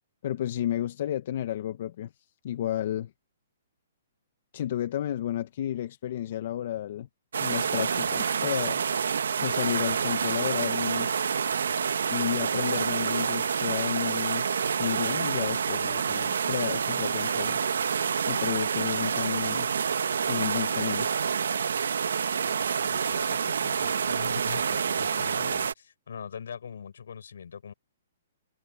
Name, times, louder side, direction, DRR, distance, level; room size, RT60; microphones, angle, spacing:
voice 1, 0.2-2.1 2.4-3.1 4.5-7.1 7.4-8.8 9.4-11.1 12.1-14.5 14.8-17.6 18.3-19.7 20.3-21.1, left 11 dB, 50° left, 1.0 m, -32 dB
sound 1, 7.3-25.7, right 6 dB, 85° right, 1.1 m, -28 dB
voice 2, 22.8-27.7, left 7 dB, 80° left, 5.5 m, -42 dB
hypercardioid pair, 155°, 0 cm